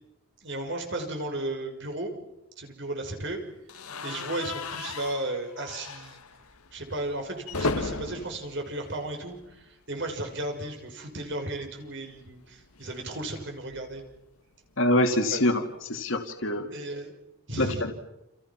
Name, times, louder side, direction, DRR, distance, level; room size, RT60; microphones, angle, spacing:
voice 1, 0.4-2.1 2.6-3.4 4.0-6.2 6.7-14.0 15.3-15.4 16.7-17.1 17.5-17.9, right 2 dB, 55° right, 4 dB, 6.2 m, -34 dB
sound 1, 3.7-9.7 10.0-10.2 10.5-10.6 11.8-14.2, left 3 dB, 85° left, 1.8 m, -37 dB
voice 2, 14.8-16.7 17.6-17.9, left 1 dB, 60° left, 5 dB, 2.6 m, -25 dB
30.0 x 29.5 x 6.1 m, 0.89 s
head